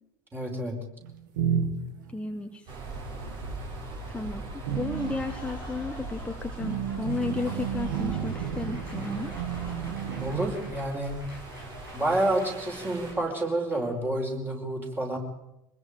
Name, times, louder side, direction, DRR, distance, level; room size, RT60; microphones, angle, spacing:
voice 1, 0.3-0.8 10.2-11.2 11.9-15.2, right 1 dB, 20° right, 1 dB, 5.2 m, -29 dB
sound 1, 1.0-2.2 3.2-3.5 4.0-10.4, right 8 dB, 65° right, 1.9 m, -32 dB
voice 2, 2.1-2.8 4.1-4.4 4.7-9.3, left 3 dB, 10° left, 5 dB, 1.2 m, -33 dB
sound 2, 2.7-13.1, right 2 dB, 45° right, 5.3 m, -40 dB
Applause, 4.7-14.0, left 1 dB, 90° right, 6.2 m, -48 dB
24.5 x 20.5 x 5.1 m, 0.85 s
figure-of-eight pair, 70°, 11 cm